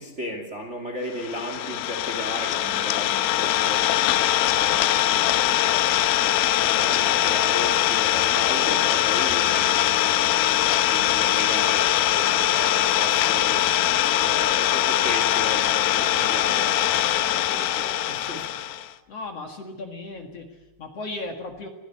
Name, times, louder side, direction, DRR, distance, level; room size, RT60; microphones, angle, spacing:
voice 1, 0.0-4.1 4.4-10.4 10.8-13.6 14.2-18.5, equal, 20° right, 5 dB, 2.6 m, -36 dB
Idling, 1.2-18.9, left 13 dB, 90° left, 2.8 m, -22 dB
voice 2, 19.1-21.7, left 2 dB, 50° left, 5 dB, 2.6 m, -36 dB
24.0 x 16.0 x 9.5 m, 1.0 s
omnidirectional pair, 4.1 m